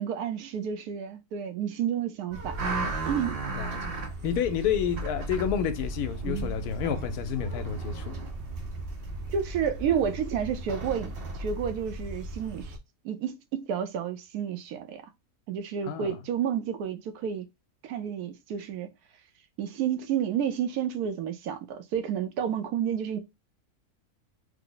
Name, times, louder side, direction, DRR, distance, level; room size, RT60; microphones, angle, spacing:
voice 1, 0.0-2.6 3.1-3.4 6.2-6.5 9.3-12.7 13.0-15.0 15.5-17.5 17.8-18.9 19.6-23.2, right 8 dB, 80° right, 1.1 m, -30 dB
sound 1, 2.3-12.8, right 2 dB, 55° right, 0.7 m, -35 dB
voice 2, 3.5-4.0 4.2-8.2 15.9-16.2, left 8 dB, 80° left, 1.1 m, -30 dB
3.3 x 2.0 x 3.7 m
omnidirectional pair, 1.6 m